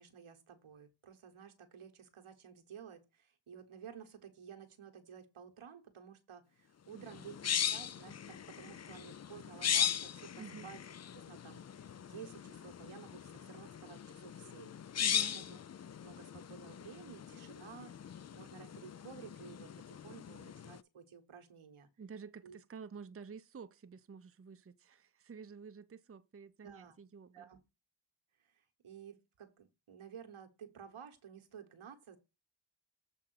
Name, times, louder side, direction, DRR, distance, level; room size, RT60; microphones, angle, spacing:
voice 1, 0.0-10.8 11.1-15.6 16.0-21.9 22.4-22.6 26.6-27.0 27.3-27.6 28.4-32.2, right 7 dB, 90° right, 1.4 m, -53 dB
voice 2, 6.9-7.3 10.4-10.7 15.0-15.5 22.0-27.5, right 5 dB, 30° right, 0.6 m, -50 dB
sound 1, 7.0-20.8, left 9 dB, 35° left, 0.4 m, -39 dB
7.6 x 3.6 x 6.3 m
cardioid pair, 50°, 48 cm